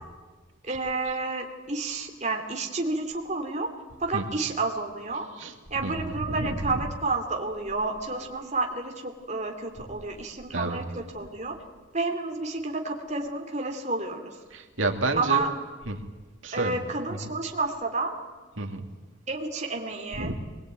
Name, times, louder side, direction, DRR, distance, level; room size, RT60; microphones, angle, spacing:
voice 1, 0.6-3.7 4.0-5.3 5.7-11.6 11.9-14.4 15.2-15.5 16.5-18.2 19.3-20.3, right 3 dB, 35° right, 3 dB, 2.8 m, -30 dB
voice 2, 6.3-6.8 10.5-10.8 14.5-15.4 15.9-16.0 16.4-16.8 18.6-18.8 20.2-20.3, right 2 dB, 85° right, 4 dB, 2.7 m, -29 dB
24.0 x 21.0 x 9.1 m, 1.3 s
head